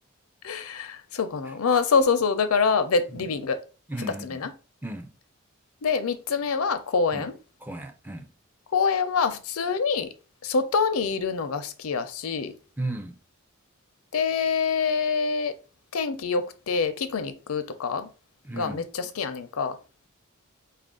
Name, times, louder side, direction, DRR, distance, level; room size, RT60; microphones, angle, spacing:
voice 1, 0.4-3.6 4.0-4.5 5.8-7.4 8.7-10.1 10.4-12.5 14.1-15.5 15.9-18.1 18.5-19.8, left 5 dB, 80° left, 0.5 m, -25 dB
voice 2, 3.9-4.4 4.8-5.1 7.1-7.3 7.6-8.3 12.8-13.2 18.4-18.8, right 1 dB, 10° right, 0.4 m, -35 dB
4.4 x 2.5 x 3.7 m
head